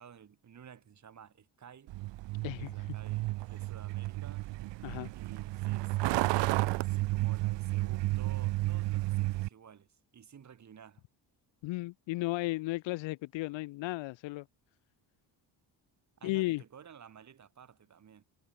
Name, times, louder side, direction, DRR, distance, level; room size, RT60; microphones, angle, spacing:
voice 1, 0.0-1.9 2.6-4.4 5.1-11.0 16.2-18.2, right 8 dB, 40° right, 8.0 m, -54 dB
Truck, 1.9-9.5, right 19 dB, 70° right, 0.7 m, -32 dB
voice 2, 2.4-2.9 4.8-5.1 11.6-14.5 16.2-16.6, left 20 dB, 80° left, 0.7 m, -34 dB
cardioid pair, 160°, 44 cm